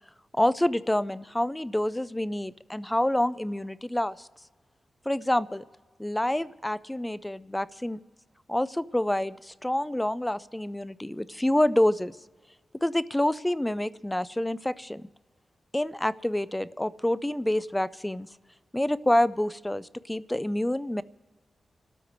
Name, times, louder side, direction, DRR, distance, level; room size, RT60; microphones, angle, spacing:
voice 1, 0.3-4.3 5.1-5.6 6.0-8.0 8.5-12.2 12.8-15.1 15.7-18.3 18.7-21.0, left 1 dB, 10° left, 17 dB, 0.4 m, -27 dB
29.5 x 13.0 x 3.3 m, 1.4 s
cardioid pair, 85°, 0 cm